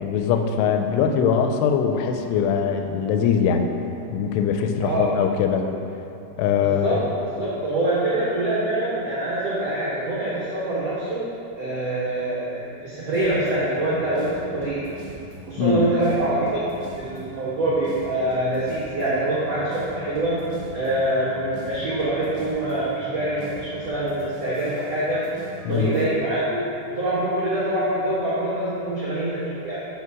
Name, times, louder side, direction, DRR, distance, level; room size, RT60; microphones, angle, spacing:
voice 1, 0.0-3.7 4.1-5.7 6.4-7.0 15.6-15.9 25.7-25.9, left 7 dB, 85° left, 5 dB, 2.6 m, -22 dB
voice 2, 4.8-5.2 6.6-7.0 7.3-11.2 11.5-14.8 15.5-16.7 17.0-20.4 20.7-25.2 25.7-29.8, right 1 dB, 85° right, -10 dB, 1.4 m, -25 dB
sound 1, 13.1-26.0, right 1 dB, 65° right, 1.8 m, -41 dB
7.3 x 3.9 x 4.7 m, 2.7 s
omnidirectional pair, 4.8 m